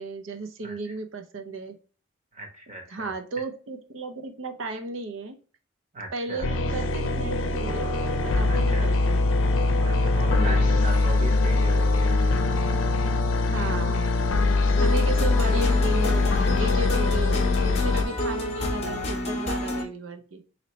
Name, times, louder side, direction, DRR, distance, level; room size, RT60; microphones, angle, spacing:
voice 1, 0.0-1.8 2.9-5.4 6.1-7.9 8.2-9.2 10.3-10.7 13.5-14.1 14.8-20.4, right 2 dB, 75° right, 6 dB, 0.6 m, -34 dB
voice 2, 0.6-1.0 2.3-3.1 5.9-6.5 8.5-8.9 9.8-12.2 14.8-14.9, right 2 dB, 35° right, 3 dB, 1.0 m, -38 dB
sound 1, 6.4-18.1, left 3 dB, 75° left, 0.5 m, -22 dB
Wind instrument woodwind instrument, 7.5-13.6, right 1 dB, 10° left, 0.4 m, -39 dB
sound 2, 14.8-19.8, left 1 dB, 30° left, 0.8 m, -30 dB
4.0 x 2.9 x 3.0 m, 0.37 s
head